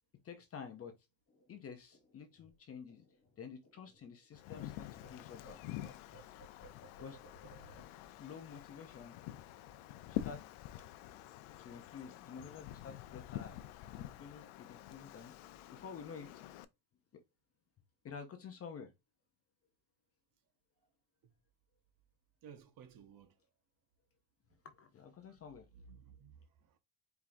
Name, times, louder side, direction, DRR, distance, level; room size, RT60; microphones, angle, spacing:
voice 1, 0.2-1.0 1.5-3.0 3.4-5.6 7.0-7.2 8.2-9.2 10.0-10.4 11.6-13.6 13.9-15.3 15.7-16.4 18.0-18.9 24.7-25.7, left 6 dB, 30° left, 0.5 m, -50 dB
sound 1, 1.3-4.7 4.9-9.9 10.2-10.5 10.7-11.3, left 1 dB, 45° left, 1.6 m, -61 dB
Wind, 4.3-16.6, left 13 dB, 80° left, 0.6 m, -47 dB
voice 2, 22.4-23.3 25.7-26.8, right 7 dB, 45° right, 0.7 m, -56 dB
4.5 x 3.5 x 2.5 m
cardioid pair, 155°, 48 cm